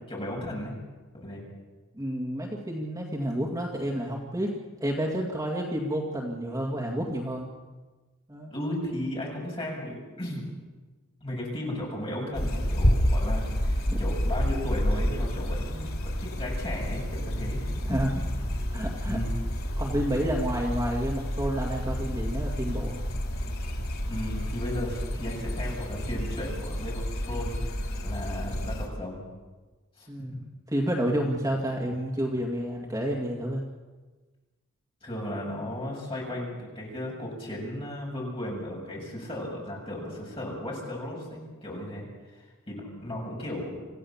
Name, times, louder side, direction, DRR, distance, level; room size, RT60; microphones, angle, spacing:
voice 1, 0.1-0.7 1.1-1.4 8.5-10.4 11.2-18.5 19.0-19.3 24.1-27.6 28.0-29.2 30.0-30.4 35.0-42.0 42.3-43.8, left 1 dB, 25° left, -3 dB, 7.4 m, -35 dB
voice 2, 1.9-7.5 8.3-8.5 13.9-14.0 17.8-18.1 18.7-19.2 19.8-23.0 30.1-30.3 30.7-33.6, equal, 15° right, -1 dB, 2.2 m, -30 dB
sound 1, 12.3-28.9, equal, 80° left, 3.7 m, -29 dB
26.5 x 15.5 x 7.3 m, 1.3 s
head